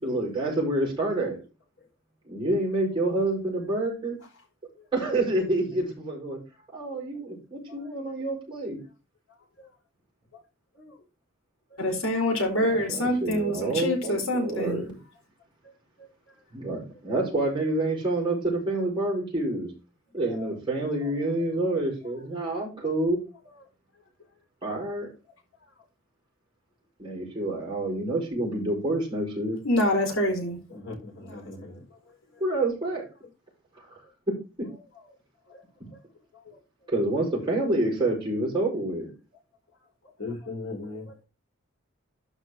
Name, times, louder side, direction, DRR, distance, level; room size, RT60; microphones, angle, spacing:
voice 1, 0.0-1.4 2.3-4.2 4.9-6.4 6.7-8.8 12.6-15.0 16.5-19.7 20.1-23.2 24.6-25.1 27.0-29.6 32.4-33.1 36.9-39.1, right 2 dB, 25° right, 5.3 m, -28 dB
voice 2, 11.8-14.9 29.6-30.6, left 1 dB, 85° left, 4.2 m, -25 dB
voice 3, 12.5-13.0 16.0-16.1 20.3-20.5 30.7-31.8 35.5-35.6 35.9-36.0 36.3-36.6 40.2-41.2, left 3 dB, 60° left, 3.8 m, -40 dB
12.0 x 5.1 x 3.8 m
head